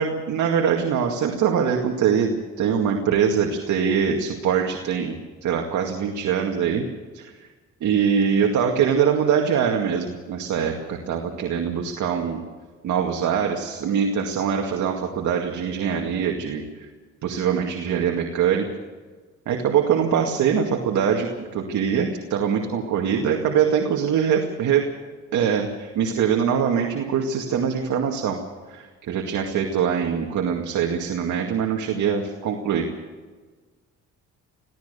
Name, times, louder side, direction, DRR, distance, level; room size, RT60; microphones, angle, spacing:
voice 1, 0.0-6.9 7.1-7.5 7.8-12.4 12.8-16.9 17.2-18.7 19.5-24.9 25.3-28.4 28.7-32.9, right 7 dB, 75° right, 2 dB, 2.2 m, -23 dB
23.5 x 16.0 x 6.8 m, 1.4 s
cardioid pair, 90°, 30 cm